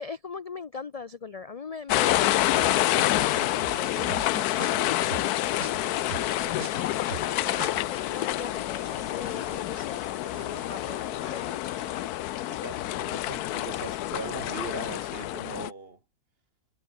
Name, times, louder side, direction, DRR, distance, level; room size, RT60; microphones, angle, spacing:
voice 1, 0.0-3.9 4.2-11.8 13.1-13.2, left 5 dB, 55° left, 0.4 m, -41 dB
sound 1, 1.9-15.7, left 15 dB, 85° left, 1.1 m, -28 dB
sound 2, 2.5-10.1 10.3-12.1, right 8 dB, 60° right, 1.3 m, -44 dB
voice 2, 10.6-11.4 12.4-16.0, right 3 dB, 40° right, 2.7 m, -40 dB
omnidirectional pair, 1.6 m